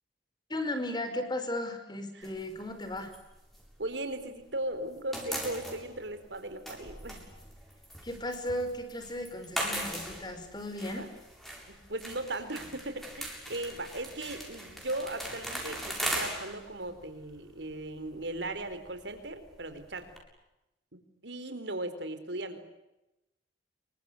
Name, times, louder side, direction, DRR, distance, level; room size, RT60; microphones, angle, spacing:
voice 1, 0.5-3.1 8.0-11.1, left 1 dB, 25° left, 9 dB, 5.0 m, -35 dB
sound 1, 2.2-4.5 4.7-20.2, equal, ahead, 7.5 m, -40 dB
voice 2, 3.8-7.3 11.0-11.1 11.7-20.1 21.2-22.8, right 1 dB, 75° right, 9 dB, 4.3 m, -37 dB
28.5 x 24.0 x 8.6 m, 0.94 s
head